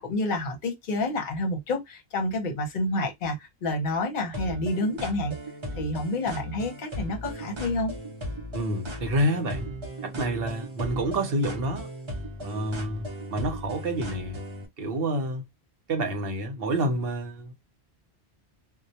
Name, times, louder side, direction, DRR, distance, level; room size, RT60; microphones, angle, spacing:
voice 1, 0.0-5.3 5.8-8.0, left 2 dB, 55° left, 0.8 m, -29 dB
sound 1, 4.3-14.7, right 1 dB, 30° right, 0.6 m, -37 dB
voice 2, 8.5-9.7 10.0-11.9 12.4-14.4 14.8-15.5 15.9-17.5, right 1 dB, 65° right, 0.9 m, -28 dB
2.2 x 2.1 x 2.7 m
omnidirectional pair, 1.1 m